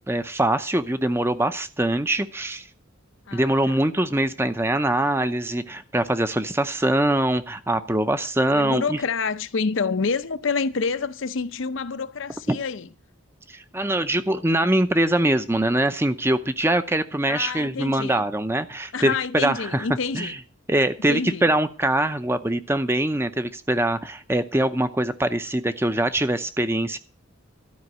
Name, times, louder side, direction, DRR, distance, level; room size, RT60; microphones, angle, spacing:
voice 1, 0.1-2.6 3.3-9.0 12.5-12.6 13.5-19.8 20.1-20.4 20.7-27.0, right 1 dB, 10° right, 0.6 m, -23 dB
voice 2, 3.3-3.8 8.5-12.9 17.3-18.3 18.9-20.4 21.1-21.4, left 5 dB, 70° left, 0.6 m, -28 dB
13.0 x 5.2 x 9.1 m
head